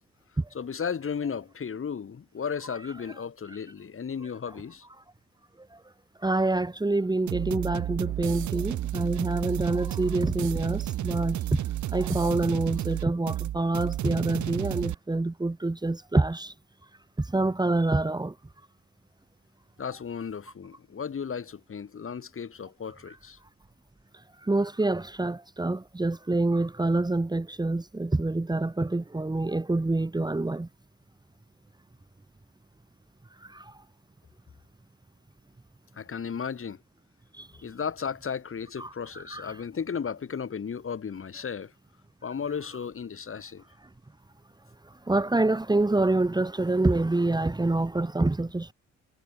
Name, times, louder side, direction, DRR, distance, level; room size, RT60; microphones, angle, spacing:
voice 1, 0.5-4.9 19.8-23.4 36.0-36.8 37.6-41.7 42.2-43.6, left 6 dB, 45° left, 7.0 m, -34 dB
voice 2, 6.2-11.7 11.9-16.5 17.2-18.3 23.1-23.2 24.4-30.7 33.4-33.8 37.3-37.5 38.8-39.6 44.8-48.7, right 2 dB, 15° right, 1.9 m, -27 dB
sound 1, 7.3-14.9, right 13 dB, 70° right, 1.6 m, -31 dB
cardioid pair, 90°, 30 cm